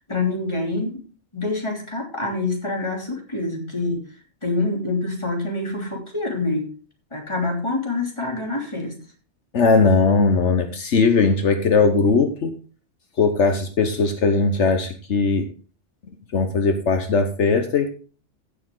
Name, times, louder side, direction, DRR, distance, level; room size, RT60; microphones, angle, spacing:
voice 1, 0.1-1.0 1.3-4.0 4.4-6.7 7.1-9.0, left 2 dB, 25° left, 0 dB, 3.2 m, -26 dB
voice 2, 9.5-12.5 13.2-15.5 16.3-17.9, left 4 dB, 70° left, 7 dB, 1.3 m, -19 dB
15.5 x 6.9 x 3.8 m, 0.38 s
omnidirectional pair, 1.3 m